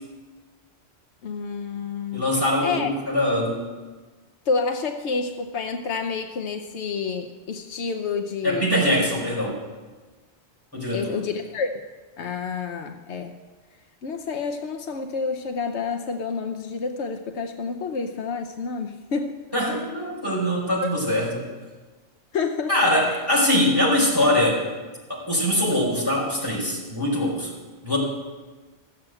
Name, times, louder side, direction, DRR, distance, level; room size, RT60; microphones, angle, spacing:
voice 1, 1.2-2.3 2.6-2.9 4.5-9.1 10.9-11.7 12.2-13.3 14.0-19.4 20.8-20.9 22.3-23.2, left 5 dB, 85° left, 5 dB, 1.1 m, -29 dB
voice 2, 2.1-3.6 8.4-9.6 10.7-11.1 19.5-21.5 22.7-24.6 25.1-27.5 27.8-28.0, left 1 dB, 20° left, -5 dB, 4.5 m, -22 dB
14.5 x 7.6 x 7.7 m, 1.3 s
omnidirectional pair, 1.1 m